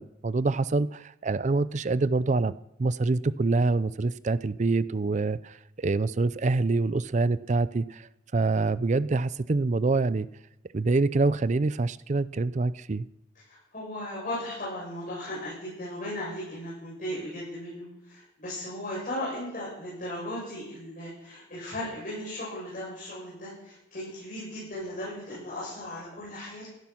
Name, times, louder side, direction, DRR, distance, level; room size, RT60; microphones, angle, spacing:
voice 1, 0.0-8.1 8.3-10.3 10.7-13.0, right 3 dB, 40° right, 16 dB, 0.5 m, -26 dB
voice 2, 13.5-26.7, left 1 dB, 45° left, -8 dB, 7.7 m, -37 dB
16.0 x 11.5 x 6.1 m, 0.89 s
head